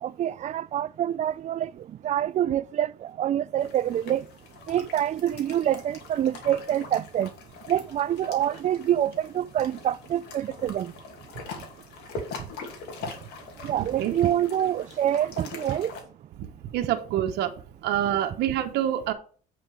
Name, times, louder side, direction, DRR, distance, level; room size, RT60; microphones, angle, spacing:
voice 1, 0.0-1.7 2.0-4.2 4.7-7.3 7.7-10.9 13.6-15.9, right 11 dB, 45° right, 0.4 m, -26 dB
sound 1, 3.6-16.0, left 4 dB, 80° left, 2.6 m, -43 dB
voice 2, 16.7-17.5 17.8-19.1, right 11 dB, 80° right, 1.0 m, -26 dB
8.6 x 5.2 x 5.0 m
cardioid pair, 110°, 17 cm